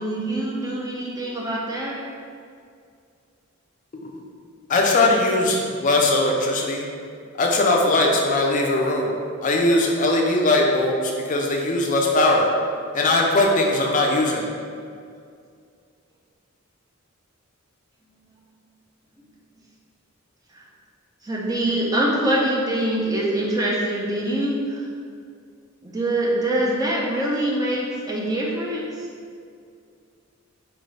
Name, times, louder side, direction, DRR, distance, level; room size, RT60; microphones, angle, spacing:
voice 1, 0.0-2.0 20.5-20.6 21.2-24.9 25.8-29.1, right 1 dB, 15° right, -4 dB, 0.5 m, -24 dB
voice 2, 4.7-6.9 7.4-9.1 9.4-12.5 12.9-14.5, left 2 dB, 35° left, 0 dB, 0.4 m, -20 dB
4.5 x 2.6 x 3.2 m, 2.3 s
head